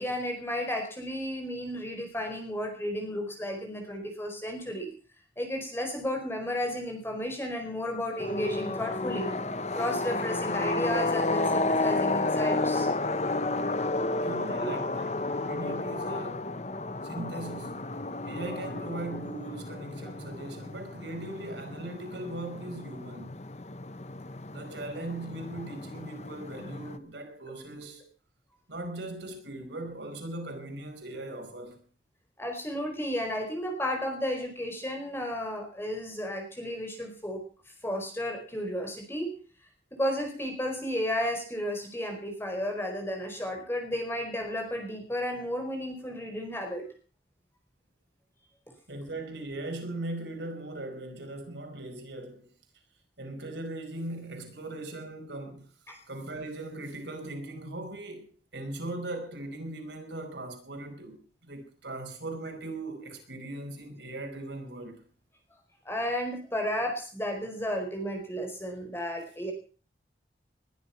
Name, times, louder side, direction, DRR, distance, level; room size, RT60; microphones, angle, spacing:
voice 1, 0.0-4.9 5.4-9.3 9.7-12.9 14.6-14.7 32.4-37.4 37.8-39.3 39.9-46.8 55.9-56.0 65.8-69.5, equal, 15° left, 4.6 m, -33 dB
sound 1, 8.2-27.0, left 2 dB, 40° left, 0.9 m, -32 dB
voice 2, 14.2-16.5 17.0-17.9 18.2-23.4 24.5-28.1 28.7-31.8 48.9-52.5 53.2-55.7 56.1-65.0, right 2 dB, 90° right, 5.1 m, -39 dB
21.0 x 11.0 x 5.8 m
head